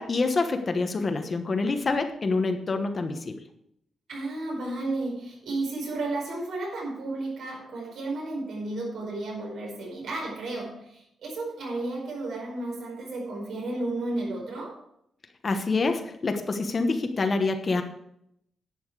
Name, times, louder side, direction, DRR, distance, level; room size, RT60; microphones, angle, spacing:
voice 1, 0.0-3.4 15.4-17.8, left 3 dB, 30° left, 6 dB, 1.1 m, -26 dB
voice 2, 4.1-14.8, right 2 dB, 70° right, 0 dB, 4.8 m, -33 dB
11.0 x 8.8 x 4.8 m, 0.73 s
wide cardioid pair, 155°, 0 cm